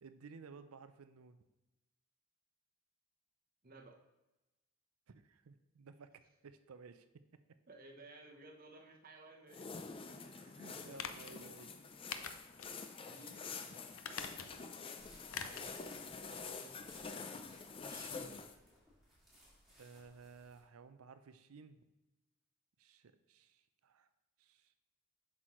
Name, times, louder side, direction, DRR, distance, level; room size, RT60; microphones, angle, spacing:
voice 1, 0.0-1.4 5.1-7.2 10.1-11.8 19.8-21.8 22.8-24.1 24.4-24.7, right 5 dB, 85° right, 11 dB, 0.5 m, -56 dB
voice 2, 3.6-4.0 7.7-9.7 10.8-11.0 12.7-12.8 13.1-13.9 15.3-18.5, right 2 dB, 40° right, 2 dB, 0.9 m, -57 dB
sound 1, 9.5-18.5, left 5 dB, 25° left, 0.4 m, -47 dB
sound 2, 10.9-11.4 12.1-12.8 13.1-13.2 14.0-14.7 15.3-15.7 16.1-16.2, left 7 dB, 70° left, 0.5 m, -44 dB
sound 3, 15.0-20.6, equal, ahead, 2.2 m, -63 dB
7.6 x 6.1 x 3.1 m, 1.0 s
head